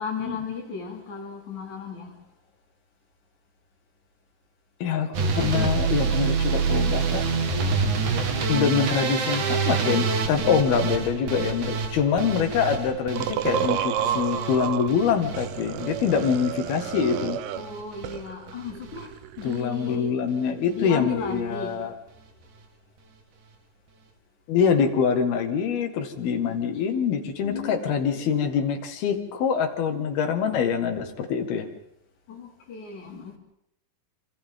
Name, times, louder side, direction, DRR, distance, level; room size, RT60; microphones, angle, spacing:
voice 1, 0.0-2.1 17.5-19.1 19.4-20.1 20.7-21.8 26.2-26.7 27.4-28.3 32.3-33.4, left 5 dB, 50° left, 3.8 m, -35 dB
voice 2, 4.8-7.3 8.5-17.4 19.4-22.0 24.5-31.7, left 6 dB, 75° left, 3.6 m, -25 dB
sound 1, 5.1-17.3 17.6-18.2 18.5-19.1 19.4-19.6 19.9-20.0 20.3-20.4, right 5 dB, 55° right, 2.9 m, -27 dB
sound 2, 13.2-14.9 15.3-17.7 18.0-19.6, right 10 dB, 75° right, 2.7 m, -30 dB
26.5 x 26.5 x 3.8 m
omnidirectional pair, 4.6 m